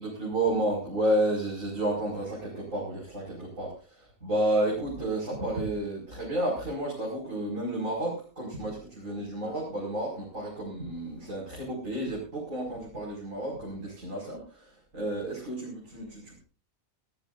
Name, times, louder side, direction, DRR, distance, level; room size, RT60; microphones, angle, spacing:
voice 1, 0.0-16.4, right 1 dB, 70° right, -3 dB, 6.0 m, -31 dB
19.5 x 18.0 x 2.6 m, 0.33 s
omnidirectional pair, 1.4 m